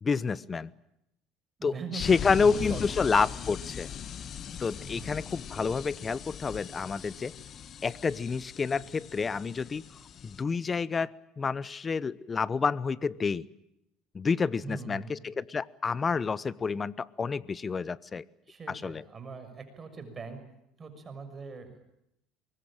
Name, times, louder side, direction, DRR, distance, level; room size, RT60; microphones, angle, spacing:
voice 1, 0.0-0.7 1.6-3.9 4.6-7.3 7.8-9.8 10.2-13.5 14.1-18.2 18.7-19.0, left 5 dB, 30° left, 19 dB, 0.9 m, -29 dB
voice 2, 1.6-3.1 4.9-5.2 14.6-15.3 18.5-20.4 20.8-21.8, right 4 dB, 30° right, 8 dB, 6.3 m, -42 dB
sound 1, 2.0-10.4, left 8 dB, 45° left, 1.5 m, -40 dB
24.0 x 22.0 x 8.8 m, 0.82 s
supercardioid pair, 95°, 0 cm